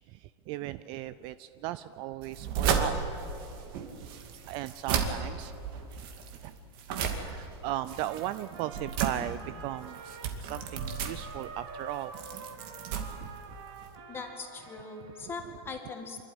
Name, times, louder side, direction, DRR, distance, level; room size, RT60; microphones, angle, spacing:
voice 1, 0.1-2.9 4.0-4.1 4.4-5.5 6.4-6.5 7.0-12.1 13.2-13.6 15.1-15.3, right 14 dB, 35° right, 14 dB, 0.4 m, -37 dB
sound 1, 2.2-13.9, right 6 dB, 55° right, 2.4 m, -34 dB
Trumpet, 8.1-15.4, right 4 dB, 80° right, 2.8 m, -47 dB
voice 2, 14.1-16.2, left 4 dB, 15° left, 4 dB, 2.0 m, -40 dB
26.0 x 12.5 x 9.9 m, 2.7 s
supercardioid pair, 155°, 14 cm